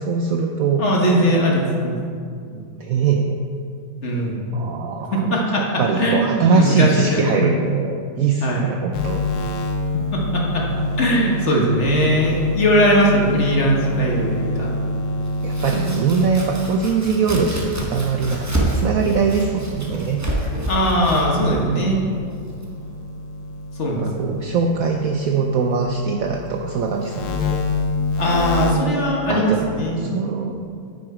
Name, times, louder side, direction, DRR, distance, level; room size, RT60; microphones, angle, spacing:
voice 1, 0.0-0.8 2.5-3.4 4.5-9.2 15.4-20.2 24.0-27.6 29.3-29.7 30.0-30.6, right 5 dB, 70° right, 3 dB, 0.8 m, -22 dB
voice 2, 0.8-1.9 4.0-4.4 5.1-7.4 8.4-8.7 10.1-10.7 11.0-14.7 20.7-22.0 23.8-24.3 28.2-30.1, equal, 45° left, -2 dB, 1.3 m, -20 dB
sound 1, 8.9-16.4 18.4-20.5 21.0-25.8 26.2-28.7, left 2 dB, 85° left, 1.5 m, -27 dB
Domestic sounds home sounds, 15.2-23.0, right 1 dB, 15° right, 0.7 m, -28 dB
9.1 x 6.1 x 4.8 m, 2.3 s
omnidirectional pair, 1.9 m